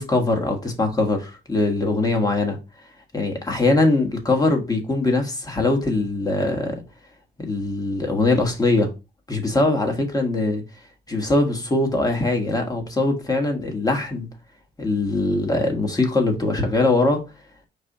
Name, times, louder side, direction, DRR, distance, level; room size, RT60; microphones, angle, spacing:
voice 1, 0.0-2.6 3.1-6.8 7.4-8.9 9.3-10.6 11.1-14.3 14.8-17.2, left 2 dB, 20° left, 1.4 m, -22 dB
5.4 x 2.4 x 4.0 m
cardioid pair, 90°, 20 cm